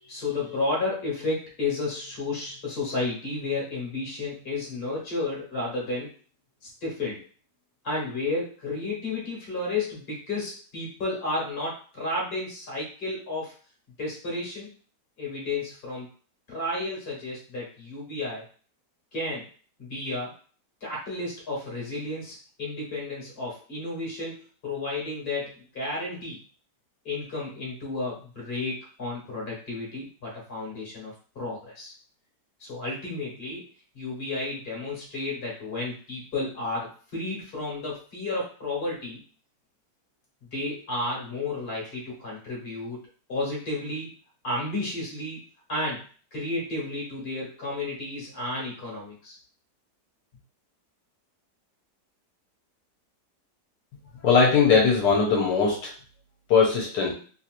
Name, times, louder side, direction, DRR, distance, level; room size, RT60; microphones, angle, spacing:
voice 1, 0.0-6.1 6.6-7.2 7.8-13.5 14.0-14.7 15.2-16.1 16.5-18.4 19.1-19.5 19.8-20.3 20.8-26.4 27.0-31.9 32.6-33.7 33.9-39.2 40.5-43.0 43.3-44.1 44.4-45.4 45.7-46.0 46.3-49.4, left 2 dB, 40° left, -4 dB, 1.5 m, -32 dB
voice 2, 54.2-55.9 56.5-57.1, left 5 dB, 80° left, -3 dB, 1.3 m, -20 dB
3.2 x 2.8 x 2.5 m, 0.40 s
omnidirectional pair, 1.8 m